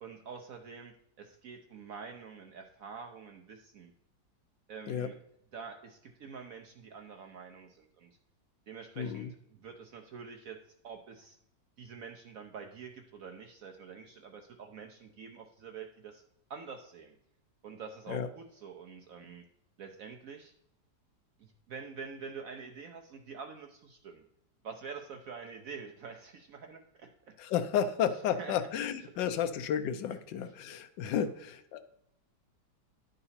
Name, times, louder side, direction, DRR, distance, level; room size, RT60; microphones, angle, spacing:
voice 1, 0.0-3.9 4.7-5.2 5.5-8.2 8.7-10.6 10.8-11.4 11.8-16.2 16.5-17.1 17.6-19.4 19.8-20.5 21.4-24.2 24.6-27.3 28.4-28.7 29.1-29.4, right 5 dB, 65° right, 3 dB, 0.8 m, -46 dB
voice 2, 9.0-9.3 18.1-18.3 27.4-31.9, left 8 dB, 80° left, 10 dB, 1.3 m, -32 dB
10.5 x 3.9 x 4.2 m, 0.72 s
omnidirectional pair, 2.0 m